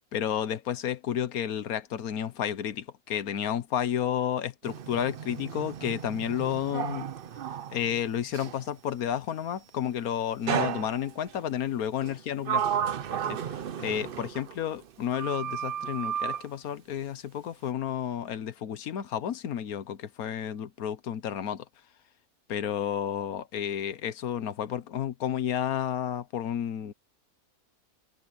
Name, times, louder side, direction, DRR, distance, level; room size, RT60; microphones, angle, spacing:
voice 1, 0.1-7.1 7.7-12.6 13.3-21.6 22.5-26.9, left 9 dB, 80° left, 1.4 m, -31 dB
Sliding door, 4.6-8.7 10.5-11.4 12.0-14.9 15.1-16.5, right 8 dB, 50° right, 0.7 m, -33 dB
omnidirectional pair, 1.5 m